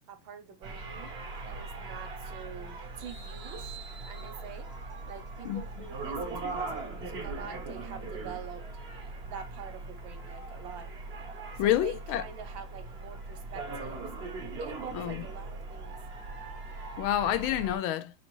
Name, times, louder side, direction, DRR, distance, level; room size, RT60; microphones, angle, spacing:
voice 1, 0.1-1.1 1.4-3.8 4.0-4.7 5.1-8.6 9.2-10.9 11.5-14.1 14.6-16.0, right 7 dB, 70° right, 1.4 m, -45 dB
sound 1, 0.6-17.8, right 3 dB, 50° right, 0.7 m, -40 dB
voice 2, 11.6-12.2 14.9-15.2 17.0-18.1, left 12 dB, 80° left, 1.3 m, -28 dB
4.3 x 4.1 x 2.9 m
omnidirectional pair, 2.3 m